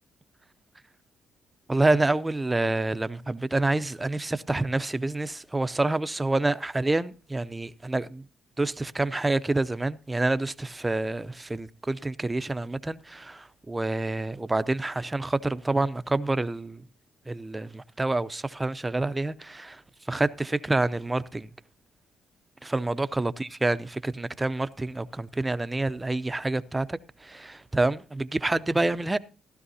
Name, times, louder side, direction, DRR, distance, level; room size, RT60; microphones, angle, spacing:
voice 1, 1.7-8.2 8.6-16.8 17.3-19.8 20.1-21.5 22.6-29.2, right 2 dB, 15° right, 0.6 m, -27 dB
15.5 x 12.5 x 2.8 m
cardioid pair, 90°, 0 cm